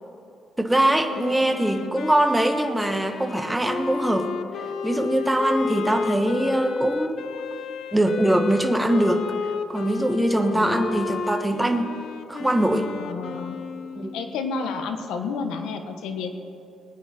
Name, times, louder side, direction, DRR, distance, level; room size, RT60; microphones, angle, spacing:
voice 1, 0.6-4.3 4.8-7.2 7.9-9.2 9.7-11.9 12.3-12.9 14.0-14.1, right 1 dB, 10° right, 6 dB, 1.3 m, -22 dB
Wind instrument woodwind instrument, 1.1-14.5, left 5 dB, 70° left, 0.9 m, -32 dB
voice 2, 10.4-10.9 13.0-13.6 14.1-16.3, left 5 dB, 85° left, 6 dB, 1.3 m, -31 dB
21.0 x 9.5 x 4.4 m, 2.7 s
cardioid pair, 90°, 0 cm